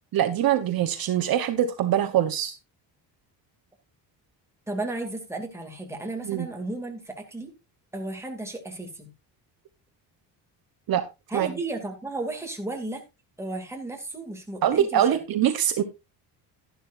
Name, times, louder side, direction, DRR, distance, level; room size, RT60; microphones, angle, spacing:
voice 1, 0.1-2.5 6.3-6.5 10.9-11.0 11.3-11.5 14.6-15.8, right 10 dB, 55° right, 7 dB, 1.1 m, -23 dB
voice 2, 4.7-7.5 7.9-9.1 11.3-13.0 13.4-15.2, right 2 dB, 5° right, 2 dB, 2.6 m, -34 dB
12.0 x 11.5 x 2.6 m, 0.24 s
cardioid pair, 140°, 42 cm